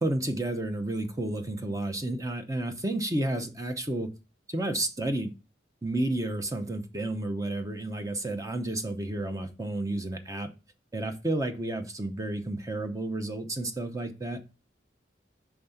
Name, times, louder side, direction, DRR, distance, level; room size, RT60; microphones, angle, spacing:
voice 1, 0.0-4.1 4.5-5.3 5.8-10.5 10.9-14.5, right 1 dB, 20° right, 0.6 m, -31 dB
5.1 x 3.4 x 5.5 m
head